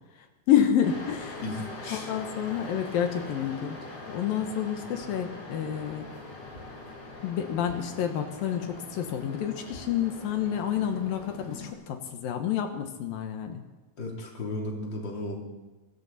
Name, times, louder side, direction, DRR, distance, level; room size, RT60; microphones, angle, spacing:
voice 1, 0.2-1.4 1.9-3.8 4.1-6.1 7.2-13.6, left 9 dB, 70° left, 6 dB, 2.8 m, -29 dB
sound 1, 0.8-11.7, left 2 dB, 50° left, 4.8 m, -43 dB
voice 2, 1.4-2.1 14.0-15.4, left 1 dB, 30° left, -1 dB, 3.4 m, -35 dB
24.5 x 13.5 x 4.2 m, 1.2 s
omnidirectional pair, 4.4 m